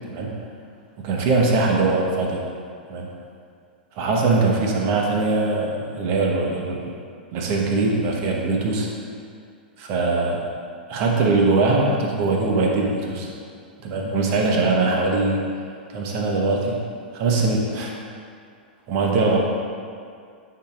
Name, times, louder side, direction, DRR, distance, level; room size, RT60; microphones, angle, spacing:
voice 1, 1.0-2.4 2.9-3.1 4.0-6.9 7.3-8.9 9.8-10.4 10.9-13.3 13.8-15.4 15.9-16.8 17.1-17.9 18.9-19.4, right 3 dB, 40° right, -1 dB, 1.1 m, -21 dB
9.7 x 4.8 x 2.5 m, 2.3 s
figure-of-eight pair, 100°, 5 cm